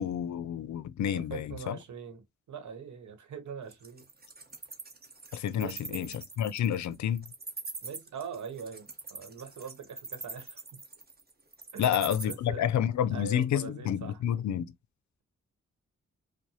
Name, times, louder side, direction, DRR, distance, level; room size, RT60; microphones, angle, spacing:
voice 1, 0.0-1.8 5.3-7.3 11.8-14.7, left 10 dB, 75° left, 0.4 m, -29 dB
voice 2, 1.1-4.0 5.6-6.1 7.8-10.8 11.7-11.9 12.2-12.7 13.1-14.2, right 6 dB, 80° right, 1.0 m, -42 dB
Wild animals, 3.7-12.3, right 3 dB, 35° right, 1.0 m, -42 dB
4.7 x 2.1 x 2.7 m
cardioid pair, 45°, 29 cm